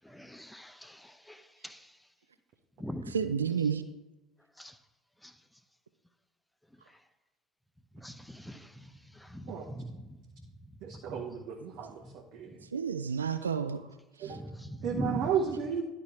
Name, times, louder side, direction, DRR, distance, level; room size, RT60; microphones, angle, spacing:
voice 1, 0.1-0.9 1.6-1.8 2.8-3.1 4.6-4.7 8.0-8.6 9.3-9.9 14.3-15.2, equal, 5° left, 10 dB, 0.7 m, -39 dB
voice 2, 3.1-3.8 12.7-13.8 14.2-14.4, right 7 dB, 80° right, 10 dB, 0.4 m, -30 dB
voice 3, 10.8-12.6 14.2-14.5 14.8-15.8, right 7 dB, 55° right, 0 dB, 0.9 m, -33 dB
11.0 x 4.1 x 4.7 m, 1.1 s
figure-of-eight pair, 65°, 0 cm